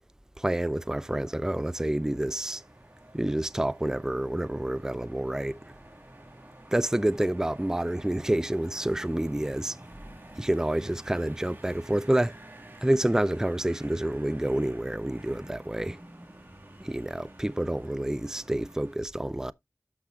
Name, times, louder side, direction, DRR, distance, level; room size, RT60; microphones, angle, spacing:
voice 1, 0.4-2.6 3.1-5.6 6.7-9.8 10.4-12.3 12.8-16.0 16.8-19.5, right 1 dB, 10° right, 0.4 m, -28 dB
sound 1, 0.7-19.0, right 1 dB, 35° right, 1.9 m, -50 dB
12.5 x 5.7 x 2.4 m
wide cardioid pair, 45°, 6 cm